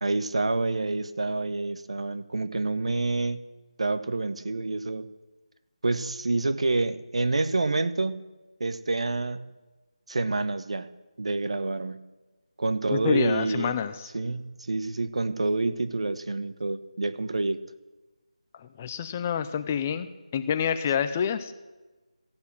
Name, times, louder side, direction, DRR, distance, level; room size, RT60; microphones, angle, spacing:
voice 1, 0.0-3.4 3.8-5.1 5.8-8.2 8.6-9.5 10.1-10.9 11.2-12.0 12.6-13.8 14.1-17.6, right 3 dB, 60° right, 12 dB, 1.0 m, -28 dB
voice 2, 12.9-14.1 18.6-20.1 20.3-21.5, left 8 dB, 15° left, 11 dB, 0.5 m, -27 dB
15.0 x 11.5 x 7.3 m, 1.2 s
figure-of-eight pair, 170°, 4 cm